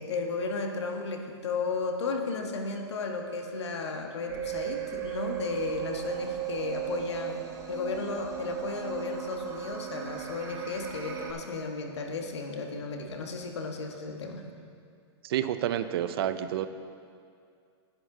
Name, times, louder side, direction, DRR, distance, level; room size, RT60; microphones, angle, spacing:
voice 1, 0.0-14.4, left 4 dB, 85° left, 3 dB, 1.3 m, -34 dB
sound 1, 4.3-11.3, right 12 dB, 20° right, 1.1 m, -36 dB
voice 2, 15.2-16.7, right 11 dB, 60° right, 12 dB, 0.6 m, -29 dB
10.5 x 10.0 x 3.8 m, 2.3 s
hypercardioid pair, 135°, 14 cm